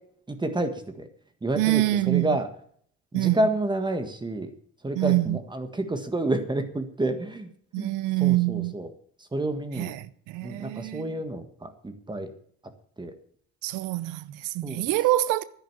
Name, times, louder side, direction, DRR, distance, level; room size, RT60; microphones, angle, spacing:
voice 1, 0.3-1.1 1.4-2.5 3.1-4.5 4.8-7.5 7.8-7.9 8.2-8.9 9.3-9.9 10.4-12.3 13.0-13.1 14.6-14.8, right 1 dB, 15° right, 1.6 m, -29 dB
voice 2, 1.5-2.4 3.1-3.5 4.9-5.4 7.7-8.8 9.7-11.2 13.6-15.4, right 17 dB, 80° right, 0.7 m, -25 dB
10.5 x 9.9 x 7.2 m
cardioid pair, 95°, 31 cm